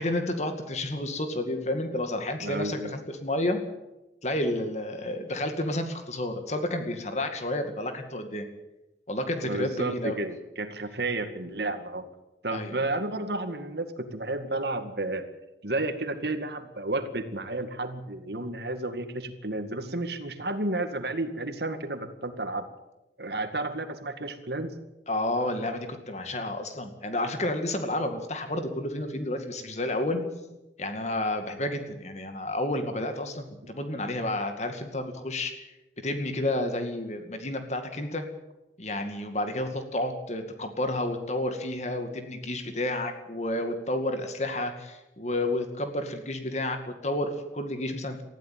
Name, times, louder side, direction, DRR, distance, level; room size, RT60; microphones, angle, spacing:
voice 1, 0.0-3.6 4.2-8.5 9.1-10.2 12.5-12.8 25.1-30.2 30.8-35.7 36.0-38.2 38.8-48.2, left 1 dB, 40° left, 6 dB, 2.2 m, -30 dB
voice 2, 2.4-2.9 9.4-12.1 12.4-15.3 15.6-22.7 23.2-24.7 33.6-33.7, right 2 dB, 70° right, 8 dB, 2.1 m, -32 dB
20.0 x 14.5 x 9.4 m, 0.99 s
head